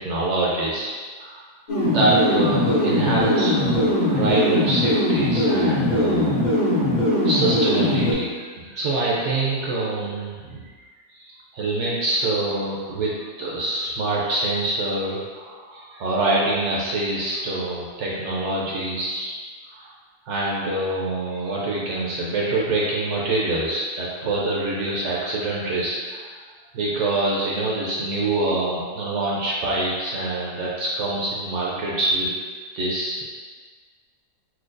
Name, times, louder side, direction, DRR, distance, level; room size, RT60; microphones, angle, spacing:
voice 1, 0.0-1.4 1.8-6.3 7.2-10.6 11.1-19.4 19.7-19.9 20.3-26.3 26.7-32.4 32.7-33.2, right 2 dB, 70° right, -5 dB, 0.6 m, -25 dB
sound 1, 1.7-8.1, left 1 dB, 60° left, 0.4 m, -20 dB
4.5 x 2.2 x 2.5 m, 1.5 s
omnidirectional pair, 1.7 m